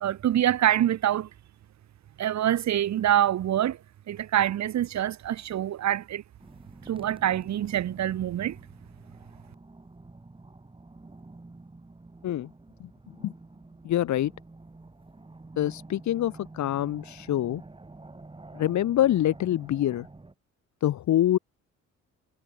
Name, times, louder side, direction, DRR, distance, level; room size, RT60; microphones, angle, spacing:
voice 1, 0.0-1.3 2.2-3.8 4.1-6.2 6.9-8.6, right 11 dB, 65° right, 1.8 m, -25 dB
sound 1, 6.4-20.3, right 2 dB, 15° right, 4.9 m, -49 dB
voice 2, 13.8-14.3 15.6-17.6 18.5-20.1 20.8-21.4, left 12 dB, 70° left, 1.5 m, -25 dB
cardioid pair, 90°, 30 cm